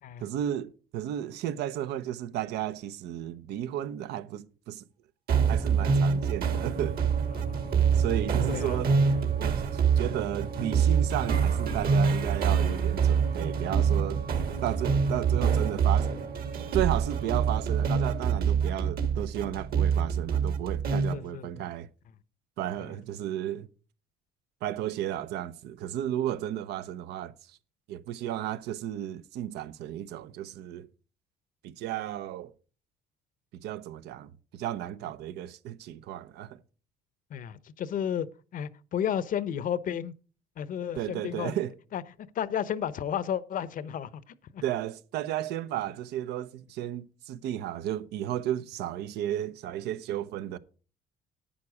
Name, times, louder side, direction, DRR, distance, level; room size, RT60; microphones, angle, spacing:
voice 1, 0.2-4.8 5.5-7.0 7.9-8.9 9.4-9.6 10.0-14.2 14.6-16.2 16.7-21.9 22.6-23.7 24.6-27.3 27.9-30.9 31.6-32.5 33.5-36.6 40.9-41.7 44.6-50.6, right 12 dB, 80° right, 0.8 m, -33 dB
sound 1, 5.3-21.2, right 6 dB, 60° right, 2.0 m, -26 dB
voice 2, 7.3-7.7 8.5-8.8 21.1-21.7 37.3-40.1 40.6-41.6 41.9-42.0 42.3-44.2 44.5-44.6, left 9 dB, 55° left, 0.8 m, -32 dB
11.5 x 8.8 x 4.9 m
cardioid pair, 110°, 17 cm